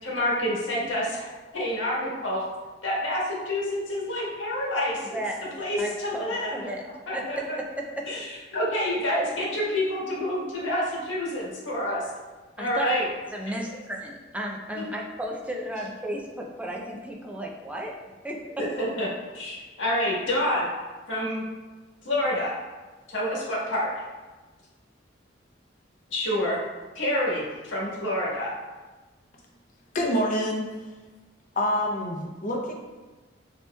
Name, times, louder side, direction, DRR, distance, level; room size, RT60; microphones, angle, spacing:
voice 1, 0.0-2.4 2.8-5.2 5.6-6.7 7.1-7.6 8.0-12.1 12.6-13.1 13.6-13.8 14.7-14.8 18.6-19.1 19.3-20.7 21.1-21.4 22.0-22.6 23.1-24.0 26.1-26.6 26.9-28.5, left 1 dB, 90° left, -6 dB, 1.4 m, -28 dB
voice 2, 5.1-6.8 7.1-8.1 12.6-12.9 13.3-17.9 18.2-18.4, right 1 dB, 5° right, -1 dB, 0.5 m, -34 dB
voice 3, 29.9-30.8 31.5-32.7, equal, 45° left, 0 dB, 0.7 m, -26 dB
6.9 x 2.9 x 2.3 m, 1.3 s
head